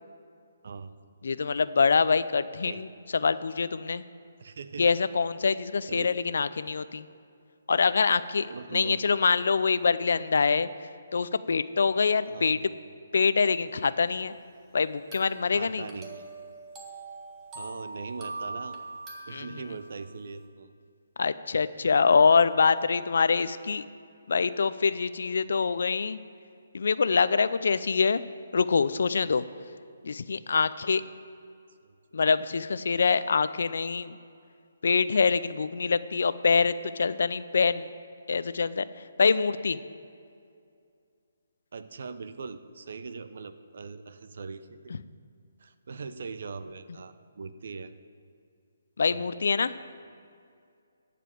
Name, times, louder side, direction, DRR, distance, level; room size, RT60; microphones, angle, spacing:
voice 1, 0.6-1.0 2.6-2.8 4.4-5.0 5.9-6.1 8.5-9.1 12.3-12.6 15.5-16.3 17.5-18.8 19.3-20.7 31.8-32.0 41.7-44.9 45.6-47.9 49.0-49.4, right 4 dB, 60° right, 12 dB, 0.7 m, -41 dB
voice 2, 1.2-4.0 4.8-7.0 7.7-10.7 11.1-12.6 13.1-14.3 14.7-15.9 19.3-19.5 21.2-23.9 24.3-26.2 26.7-28.2 28.5-29.4 30.0-31.0 32.1-34.2 34.8-37.9 38.3-38.8 39.2-39.8 49.0-49.7, left 5 dB, 70° left, 15 dB, 0.5 m, -25 dB
sound 1, 15.1-20.1, right 2 dB, 20° right, 1.4 m, -42 dB
13.5 x 5.0 x 8.4 m, 2.4 s
hypercardioid pair, 150°, 0 cm